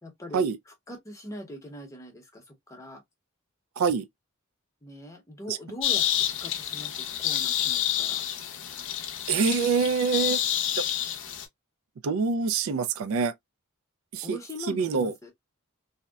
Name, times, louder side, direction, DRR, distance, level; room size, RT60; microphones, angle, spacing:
voice 1, 0.0-3.0 4.8-8.2 14.2-15.3, left 1 dB, 15° left, 0.8 m, -42 dB
sound 1, 5.8-11.5, left 11 dB, 60° left, 0.6 m, -29 dB
voice 2, 9.3-10.4 12.0-13.3 14.1-14.4 14.7-15.1, right 5 dB, 75° right, 0.4 m, -25 dB
2.7 x 2.0 x 2.2 m
head